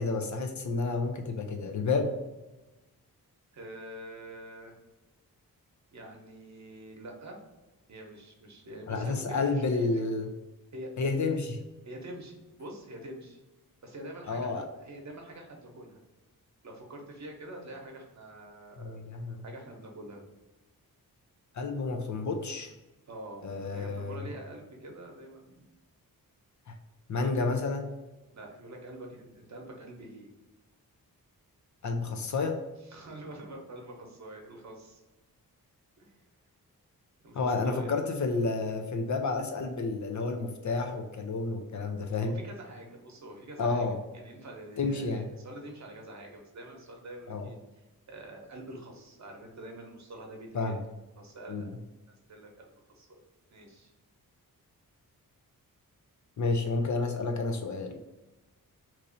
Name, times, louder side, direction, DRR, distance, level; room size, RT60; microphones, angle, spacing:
voice 1, 0.0-2.1 8.9-10.3 11.0-11.5 14.3-14.6 18.8-19.4 21.5-22.7 23.4-24.3 26.7-26.8 27.1-27.9 31.8-32.6 37.3-42.4 43.6-44.0 44.8-45.3 47.3-47.5 50.5-50.8 51.5-51.7 56.4-58.2, left 3 dB, 50° left, 4 dB, 0.5 m, -30 dB
voice 2, 3.5-4.8 5.9-7.4 7.9-10.1 10.7-11.1 11.8-13.4 13.8-16.0 16.6-19.0 19.4-20.2 23.1-25.8 27.1-27.6 28.3-30.3 32.8-35.0 36.0-36.2 37.2-37.9 42.2-43.9 44.1-50.8 51.2-51.8 52.3-53.2 53.5-53.9, right 1 dB, 50° right, 1 dB, 0.9 m, -46 dB
3.1 x 2.6 x 3.9 m, 1.1 s
wide cardioid pair, 110°, 36 cm